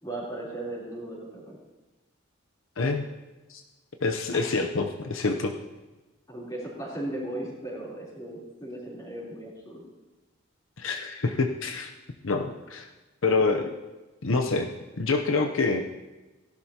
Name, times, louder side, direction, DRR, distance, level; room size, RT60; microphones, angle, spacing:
voice 1, 0.0-1.6 4.3-4.4 6.3-9.9, right 1 dB, 20° left, -5 dB, 3.6 m, -37 dB
voice 2, 2.8-3.1 3.5-3.6 4.0-5.5 10.8-11.9 12.2-12.9 13.2-13.7 14.2-14.7 15.0-15.8, left 3 dB, 75° left, 4 dB, 0.8 m, -26 dB
17.0 x 12.0 x 2.9 m, 1.2 s
head